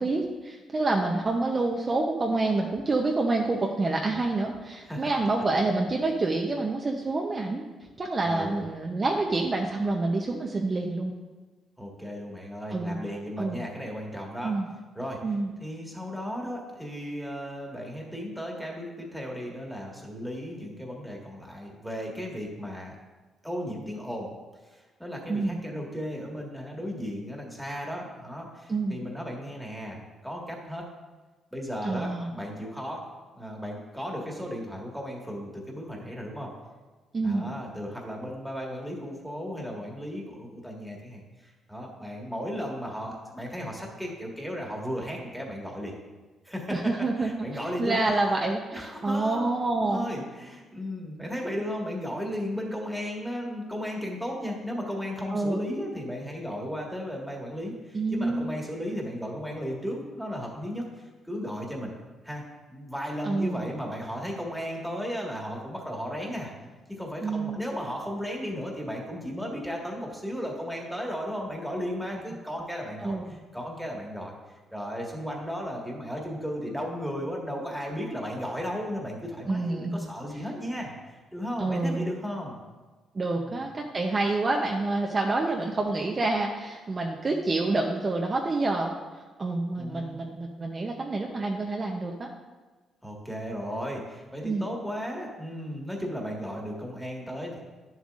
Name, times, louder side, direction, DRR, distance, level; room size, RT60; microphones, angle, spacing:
voice 1, 0.0-7.7 8.0-11.1 12.7-13.0 13.4-13.6 14.4-14.7 15.2-15.5 25.3-25.6 28.7-29.0 31.8-32.3 37.1-37.5 46.7-47.3 47.8-50.0 55.3-55.6 57.9-58.5 63.2-63.7 67.2-67.6 73.0-73.2 79.5-80.0 81.6-82.1 83.1-88.9 89.4-92.3 94.4-94.7, right 2 dB, 35° right, 1 dB, 0.7 m, -27 dB
voice 2, 8.2-8.6 11.8-14.5 14.9-15.2 15.6-22.9 23.4-24.3 24.6-30.9 31.5-33.1 33.3-36.5 37.2-45.9 46.4-48.2 48.4-61.9 62.2-62.4 62.7-66.5 66.9-74.4 74.7-82.5 83.3-83.6 89.8-90.2 93.0-97.6, equal, ahead, -1 dB, 1.8 m, -35 dB
10.5 x 7.3 x 2.5 m, 1.3 s
cardioid pair, 90°, 0 cm